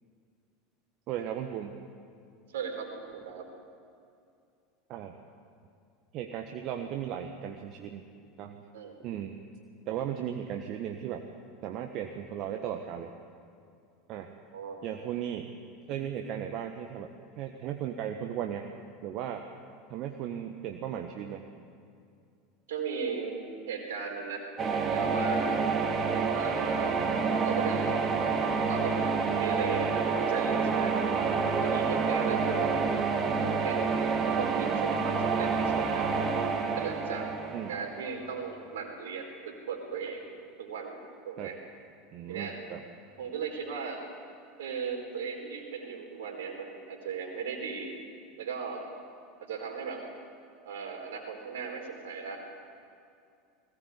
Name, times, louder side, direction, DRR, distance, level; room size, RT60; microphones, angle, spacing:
voice 1, 1.1-1.8 4.9-5.1 6.1-8.0 8.4-8.6 9.0-9.4 9.9-11.2 11.6-13.1 14.1-14.3 14.8-15.5 15.9-18.7 19.0-19.4 19.9-21.4 32.0-32.3 37.5-37.8 41.4-41.5 42.1-42.8, right 10 dB, 50° right, 4 dB, 1.3 m, -36 dB
voice 2, 2.5-3.5 8.7-9.0 14.5-14.8 22.7-23.4 23.7-24.4 24.9-25.6 26.3-27.0 27.4-28.1 28.7-30.9 31.6-32.7 33.4-36.1 36.8-37.3 37.7-40.3 40.6-41.6 42.3-42.6 43.2-44.0 44.6-47.9 48.4-48.9 49.4-50.0 50.6-52.4, right 6 dB, 70° right, 3 dB, 4.1 m, -37 dB
sound 1, 24.6-38.4, right 5 dB, 35° right, 2.8 m, -28 dB
20.5 x 18.0 x 8.4 m, 2.4 s
figure-of-eight pair, 80°, 0 cm